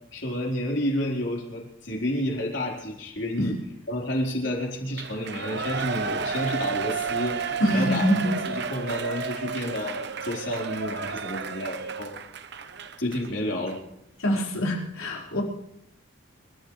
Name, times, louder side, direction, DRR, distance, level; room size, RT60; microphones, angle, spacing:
voice 1, 0.1-3.6 3.9-7.4 7.7-12.1 13.0-13.8, left 1 dB, 60° left, -1 dB, 4.3 m, -30 dB
Shout / Cheering, 4.9-13.3 13.7-13.8, right 5 dB, 55° right, 0.9 m, -32 dB
voice 2, 7.6-8.4 14.2-15.4, equal, 90° left, -2 dB, 5.0 m, -24 dB
29.5 x 14.0 x 3.3 m, 0.78 s
head